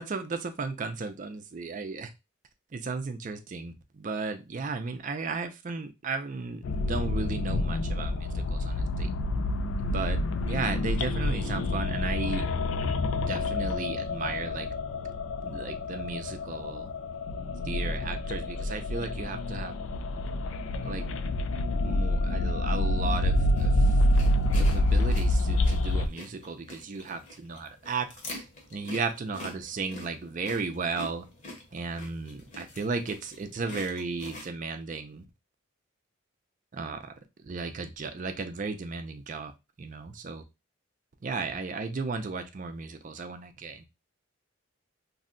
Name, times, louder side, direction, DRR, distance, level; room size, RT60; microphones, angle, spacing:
voice 1, 0.0-2.1 2.7-9.1 9.8-12.4 13.3-14.7 15.4-16.9 17.7-19.7 20.8-21.1 21.8-23.7 24.6-28.1 28.3-28.4 28.7-31.3 31.7-35.2 36.7-37.1 37.4-39.5 39.8-40.4 41.2-43.9, right 4 dB, 40° right, 0.4 m, -35 dB
sound 1, 6.6-26.1, left 1 dB, 80° left, 0.4 m, -28 dB
sound 2, 23.5-34.5, left 2 dB, 35° left, 0.8 m, -46 dB
2.7 x 2.1 x 3.7 m
head